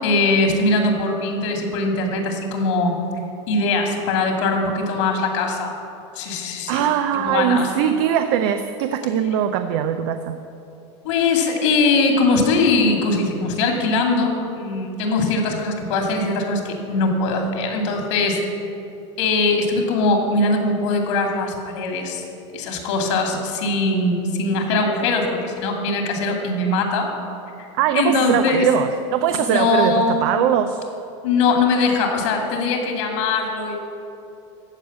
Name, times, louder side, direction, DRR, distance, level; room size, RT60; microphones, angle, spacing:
voice 1, 0.0-3.0 3.5-5.7 6.2-6.9 7.1-7.7 11.0-18.4 19.2-22.2 22.5-27.1 27.9-28.7 29.3-30.2 31.2-33.8, left 3 dB, 75° left, 2 dB, 2.4 m, -21 dB
voice 2, 6.7-10.4 27.8-30.8 33.2-33.3, right 9 dB, 60° right, 9 dB, 0.6 m, -21 dB
14.0 x 4.8 x 8.4 m, 2.8 s
supercardioid pair, 130°, 16 cm